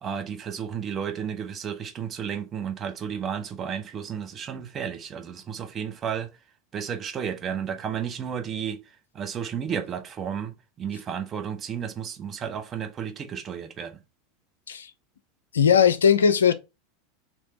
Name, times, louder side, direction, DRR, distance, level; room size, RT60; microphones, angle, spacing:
voice 1, 0.0-6.3 6.7-8.8 9.1-14.0, right 7 dB, 30° right, 0.7 m, -32 dB
voice 2, 15.5-16.5, left 7 dB, 70° left, 0.4 m, -18 dB
3.3 x 3.0 x 4.1 m
figure-of-eight pair, 85°, 0 cm